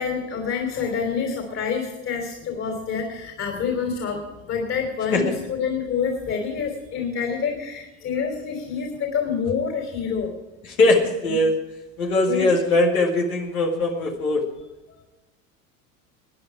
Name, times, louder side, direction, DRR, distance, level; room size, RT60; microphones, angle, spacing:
voice 1, 0.0-10.3 11.2-11.4 12.3-12.5, left 6 dB, 40° left, 2 dB, 3.2 m, -27 dB
voice 2, 10.7-11.6 12.0-14.4, left 2 dB, 90° left, 1 dB, 2.1 m, -20 dB
21.0 x 9.7 x 4.8 m, 1.0 s
hypercardioid pair, 80°, 41 cm